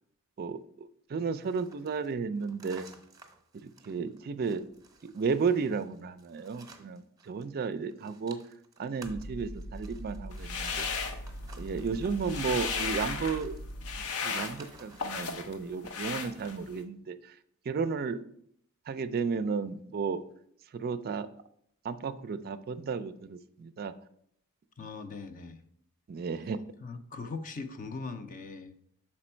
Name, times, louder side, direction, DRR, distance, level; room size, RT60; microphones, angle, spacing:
voice 1, 1.1-2.9 3.5-4.6 5.0-8.4 8.8-10.9 11.6-13.5 14.2-17.2 17.7-18.2 18.9-20.2 20.7-21.3 21.8-23.9 26.1-26.6, right 5 dB, 45° right, 12 dB, 0.4 m, -33 dB
sound 1, 1.3-7.5 7.7-15.2, right 3 dB, 15° right, 0.8 m, -55 dB
sound 2, 9.0-14.1, equal, 55° left, 1.0 m, -42 dB
sound 3, 10.3-11.7 12.0-13.4 13.8-15.5 15.9-16.8, left 5 dB, 80° left, 0.8 m, -35 dB
voice 2, 24.8-25.6 26.8-28.7, left 4 dB, 40° left, 9 dB, 0.5 m, -40 dB
6.1 x 4.4 x 4.3 m, 0.68 s
head